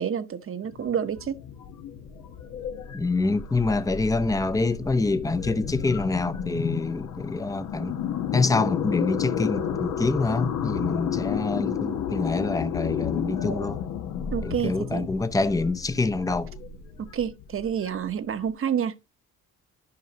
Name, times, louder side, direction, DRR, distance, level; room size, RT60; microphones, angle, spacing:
voice 1, 0.0-1.4 14.3-15.1 17.0-19.0, right 8 dB, 45° right, 0.9 m, -29 dB
sound 1, 0.6-18.4, left 8 dB, 80° left, 1.2 m, -32 dB
voice 2, 2.9-8.0 8.3-13.8 14.4-16.5, left 3 dB, 10° left, 0.6 m, -26 dB
12.5 x 5.4 x 2.9 m
cardioid pair, 90°, 30 cm